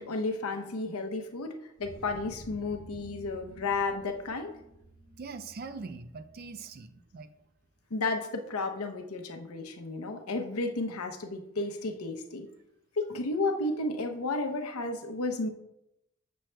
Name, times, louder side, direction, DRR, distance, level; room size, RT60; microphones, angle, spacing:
voice 1, 0.0-1.5 1.8-4.6 7.9-12.5 13.0-15.5, left 3 dB, 85° left, 5 dB, 0.7 m, -32 dB
sound 1, 1.8-7.3, right 1 dB, ahead, 0.9 m, -51 dB
voice 2, 5.2-7.3, right 4 dB, 40° right, 10 dB, 0.3 m, -42 dB
7.5 x 6.1 x 2.2 m, 0.84 s
head